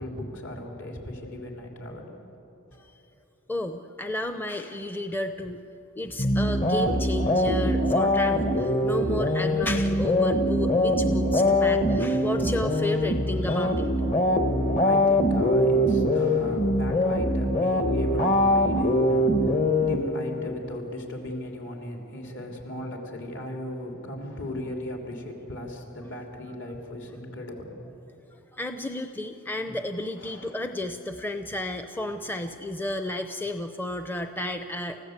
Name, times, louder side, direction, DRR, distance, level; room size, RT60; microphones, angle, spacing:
voice 1, 0.0-2.2 14.8-19.6 19.8-27.8 30.2-30.6, left 1 dB, 60° left, 1 dB, 3.7 m, -37 dB
voice 2, 3.5-5.6 6.0-13.9 28.5-35.0, left 1 dB, 10° left, 7 dB, 0.7 m, -32 dB
sound 1, 6.2-20.5, left 1 dB, 35° left, 1.3 m, -23 dB
29.5 x 15.5 x 8.1 m, 2.9 s
head